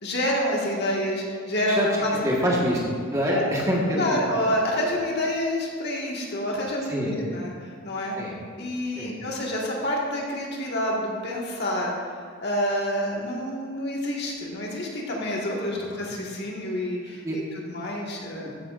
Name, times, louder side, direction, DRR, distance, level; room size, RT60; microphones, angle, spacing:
voice 1, 0.0-2.1 2.4-2.5 3.3-3.4 3.9-8.2 8.6-11.9 12.4-18.6, left 1 dB, 45° left, -3 dB, 1.8 m, -28 dB
voice 2, 1.7-4.2 6.9-7.1 8.1-8.3 8.9-9.1 15.7-15.9 17.2-17.4, equal, 15° right, -4 dB, 1.5 m, -25 dB
14.0 x 10.5 x 2.6 m, 2.3 s
head